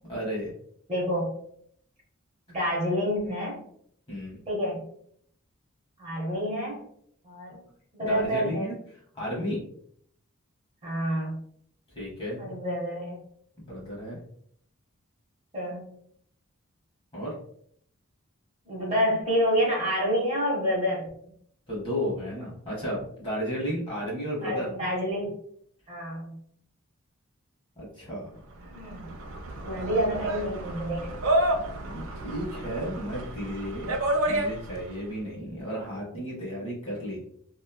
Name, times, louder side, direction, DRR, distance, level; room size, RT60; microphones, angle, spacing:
voice 1, 0.1-0.5 4.1-4.4 8.0-8.8 9.1-9.6 11.9-12.4 13.6-14.2 17.1-17.4 21.7-24.7 27.8-28.3 31.8-37.2, equal, 25° left, -5 dB, 0.9 m, -33 dB
voice 2, 0.9-1.3 2.5-3.6 4.5-4.8 6.0-6.8 7.2-7.6 7.9-8.7 10.8-11.4 12.4-13.2 15.5-15.9 18.7-21.1 24.4-25.4 25.9-26.4 28.7-29.1 29.6-31.0, equal, 30° right, -4 dB, 0.8 m, -28 dB
sound 1, 28.6-35.0, right 1 dB, 65° right, 0.4 m, -30 dB
2.9 x 2.2 x 2.2 m, 0.65 s
head